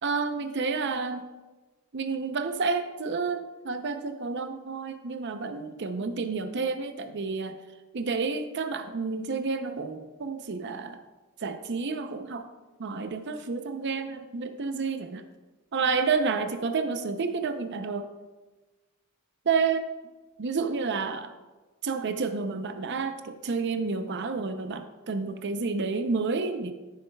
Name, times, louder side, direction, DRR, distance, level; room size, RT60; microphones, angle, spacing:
voice 1, 0.0-1.2 1.9-7.6 7.9-11.0 11.4-12.5 12.8-15.2 15.7-18.1 19.4-19.9 20.4-21.4 21.8-26.7, right 4 dB, 55° right, 7 dB, 0.6 m, -30 dB
13.0 x 7.1 x 2.3 m, 1.2 s
head